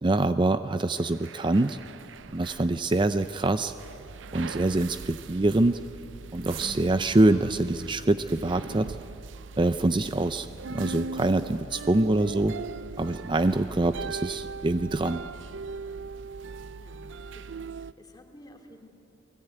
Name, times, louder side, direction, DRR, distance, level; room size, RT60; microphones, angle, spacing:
voice 1, 0.0-1.8 2.3-3.7 4.3-5.8 6.3-9.0 9.6-12.6 13.0-15.2, right 2 dB, 25° right, 10 dB, 0.5 m, -25 dB
sound 1, 1.0-17.9, right 4 dB, 85° right, 0.5 m, -40 dB
voice 2, 17.3-18.9, left 1 dB, 20° left, 3 dB, 2.7 m, -52 dB
30.0 x 20.0 x 9.1 m, 2.8 s
head